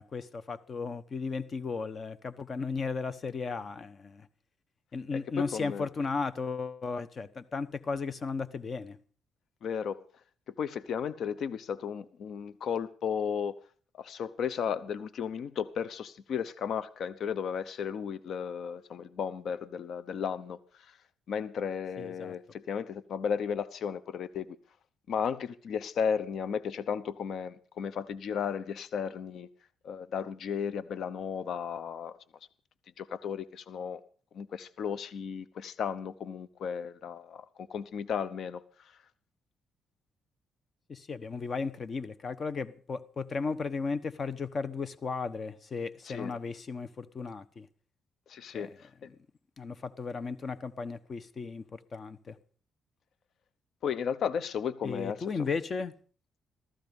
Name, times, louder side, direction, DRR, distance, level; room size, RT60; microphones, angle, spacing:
voice 1, 0.0-4.3 4.9-9.0 22.0-22.3 40.9-47.7 48.5-48.8 49.6-52.4 54.8-55.9, left 4 dB, 40° left, 1.1 m, -35 dB
voice 2, 5.1-5.9 9.6-10.0 10.6-13.6 14.0-20.6 21.3-24.5 25.1-29.5 29.8-32.1 33.0-34.0 34.3-38.6 46.1-46.3 48.3-48.9 53.8-55.2, left 7 dB, 65° left, 0.9 m, -34 dB
15.5 x 14.0 x 5.4 m
cardioid pair, 90°, 0 cm